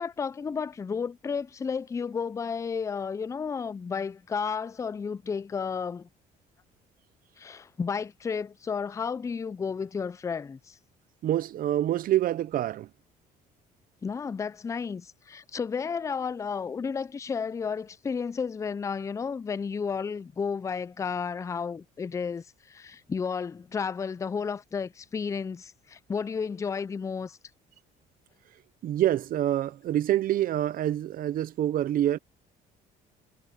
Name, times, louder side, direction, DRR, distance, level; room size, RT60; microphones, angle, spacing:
voice 1, 0.0-6.1 7.4-10.8 14.0-27.4, left 6 dB, 20° left, 0.4 m, -32 dB
voice 2, 11.2-12.9 28.8-32.2, right 12 dB, 55° right, 0.7 m, -26 dB
cardioid pair, 110°, 17 cm